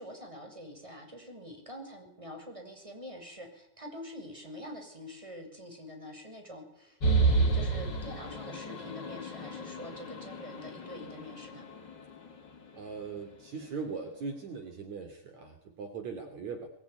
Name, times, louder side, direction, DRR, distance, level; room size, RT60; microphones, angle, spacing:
voice 1, 0.0-11.6, equal, 10° right, 4 dB, 6.4 m, -45 dB
sound 1, 7.0-12.6, right 3 dB, 35° left, 3.3 m, -31 dB
voice 2, 12.7-16.7, right 5 dB, 55° right, 6 dB, 3.9 m, -40 dB
23.0 x 23.0 x 9.8 m, 0.79 s
omnidirectional pair, 3.9 m